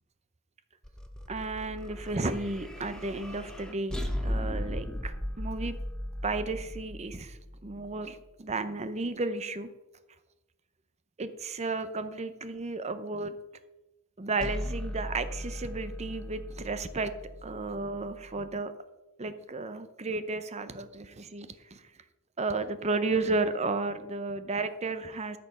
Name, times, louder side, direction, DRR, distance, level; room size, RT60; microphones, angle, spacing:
sound 1, 0.8-8.1 14.4-18.5, equal, 5° left, 1.0 m, -37 dB
voice 1, 1.3-5.8 6.2-9.7 11.2-13.4 14.2-17.1 17.4-18.7 19.2-21.8 22.4-25.4, right 3 dB, 30° right, 11 dB, 0.7 m, -33 dB
13.0 x 6.8 x 5.6 m, 1.0 s
head